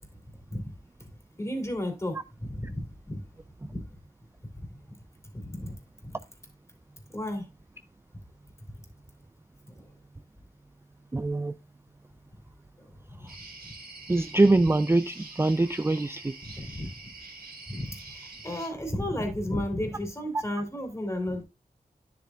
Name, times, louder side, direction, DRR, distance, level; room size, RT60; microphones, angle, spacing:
voice 1, 1.4-2.2 2.6-3.2 3.7-3.8 4.6-4.7 5.3-5.7 6.0-6.2 7.1-7.5 9.7-9.8 16.4-16.9 17.7-21.4, left 1 dB, 20° left, 4 dB, 3.0 m, -33 dB
voice 2, 11.1-11.5 13.2-13.3 14.1-16.3, right 2 dB, 15° right, 12 dB, 0.4 m, -24 dB
sound 1, 13.3-18.7, right 3 dB, 80° right, 2.3 m, -46 dB
10.0 x 6.9 x 2.4 m, 0.25 s
wide cardioid pair, 60°, 16 cm